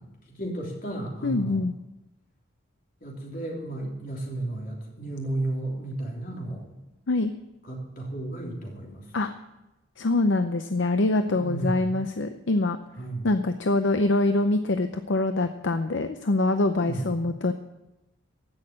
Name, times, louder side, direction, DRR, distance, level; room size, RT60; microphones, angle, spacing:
voice 1, 0.3-1.6 3.0-6.7 7.7-9.1 11.3-11.9 13.0-13.3 16.7-17.1, right 2 dB, 45° left, -1 dB, 3.4 m, -33 dB
voice 2, 1.2-1.7 7.1-7.3 9.1-9.3 10.0-12.8 13.2-17.5, left 2 dB, 65° left, 8 dB, 0.6 m, -24 dB
15.5 x 6.5 x 8.6 m, 0.96 s
head